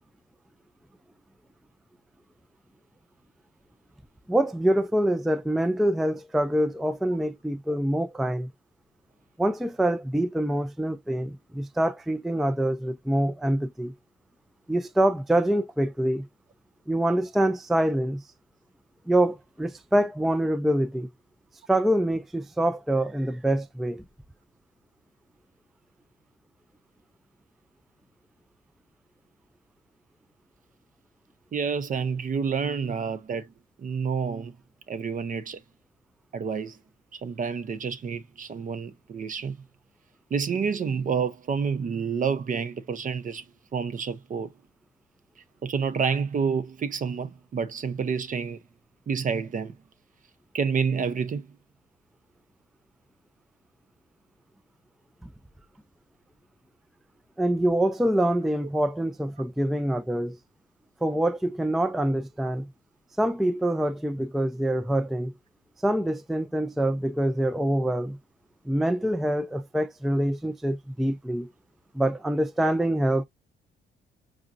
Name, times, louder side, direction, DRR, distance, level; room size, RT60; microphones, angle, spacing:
voice 1, 4.3-8.5 9.4-13.9 14.7-16.2 16.9-18.2 19.1-21.1 21.7-24.0 57.4-60.4 61.0-62.7 63.2-65.3 65.8-68.2 68.7-71.5 71.9-73.2, right 1 dB, ahead, 0.3 m, -25 dB
voice 2, 31.5-33.5 33.8-34.6 34.9-35.6 36.3-36.8 37.1-39.6 40.3-43.4 43.7-44.5 45.6-48.6 49.1-49.8 50.5-51.5, right 6 dB, 40° right, 0.6 m, -29 dB
4.8 x 2.5 x 2.5 m
cardioid pair, 90°, 20 cm